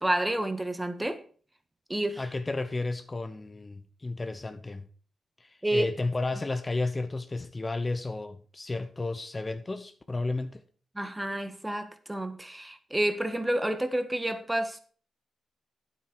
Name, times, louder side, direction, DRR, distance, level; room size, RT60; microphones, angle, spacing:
voice 1, 0.0-1.2 1.9-2.2 5.6-5.9 10.9-14.8, right 1 dB, 15° right, 1.7 m, -29 dB
voice 2, 2.2-4.9 5.4-10.6, left 2 dB, 30° left, 1.0 m, -32 dB
9.2 x 8.5 x 4.6 m
cardioid pair, 55°, 0 cm